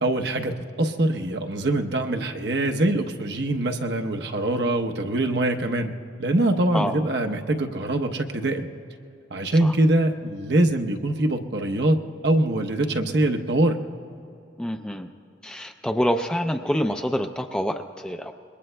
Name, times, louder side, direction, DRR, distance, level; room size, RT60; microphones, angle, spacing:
voice 1, 0.0-5.9 6.2-8.7 9.3-13.8, right 1 dB, 60° right, 3 dB, 0.8 m, -23 dB
voice 2, 14.6-15.1 15.4-18.3, equal, 5° left, 4 dB, 0.4 m, -26 dB
26.0 x 21.5 x 2.2 m, 2.8 s
head